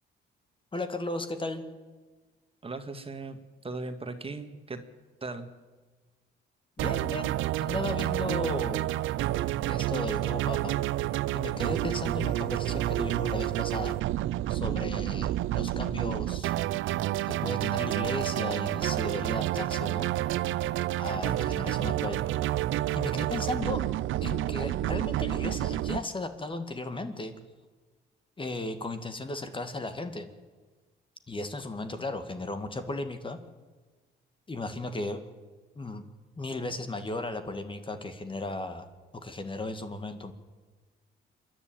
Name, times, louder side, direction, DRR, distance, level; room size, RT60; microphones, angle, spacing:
voice 1, 0.7-1.6 6.8-8.9 9.6-10.8 11.3-14.0 14.5-16.5 17.3-20.1 21.0-22.2 22.9-23.8 24.2-27.3 28.4-30.3 31.3-33.4 34.5-35.2 35.8-36.0 36.4-38.9 39.1-40.3, left 2 dB, 25° left, 8 dB, 2.1 m, -35 dB
voice 2, 2.6-4.8 5.2-5.5, right 3 dB, 30° right, 7 dB, 2.0 m, -38 dB
sound 1, 6.8-26.0, right 14 dB, 80° right, 0.6 m, -29 dB
27.5 x 11.0 x 9.2 m, 1.3 s
cardioid pair, 90°, 20 cm